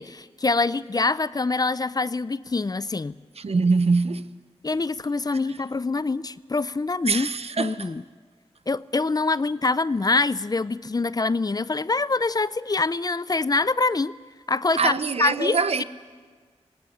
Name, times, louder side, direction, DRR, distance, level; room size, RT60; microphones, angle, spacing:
voice 1, 0.0-3.1 4.6-7.3 7.6-8.0 8.7-14.1 14.5-14.9 15.2-15.8, left 3 dB, 35° left, 0.5 m, -25 dB
voice 2, 3.4-4.3 4.7-4.8 5.3-5.6 7.0-7.9 14.8-15.8, right 4 dB, 65° right, 0.9 m, -24 dB
18.5 x 18.5 x 9.9 m
cardioid pair, 50°, 11 cm